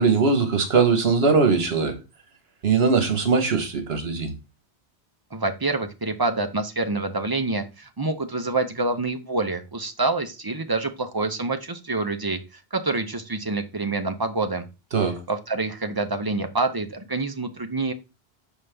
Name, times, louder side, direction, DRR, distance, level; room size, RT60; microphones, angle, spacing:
voice 1, 0.0-2.0 2.6-4.3 14.9-15.2, right 4 dB, 70° right, 1.4 m, -20 dB
voice 2, 5.3-14.6 15.3-17.9, right 3 dB, 25° right, 0.5 m, -27 dB
5.5 x 5.0 x 3.3 m
omnidirectional pair, 1.1 m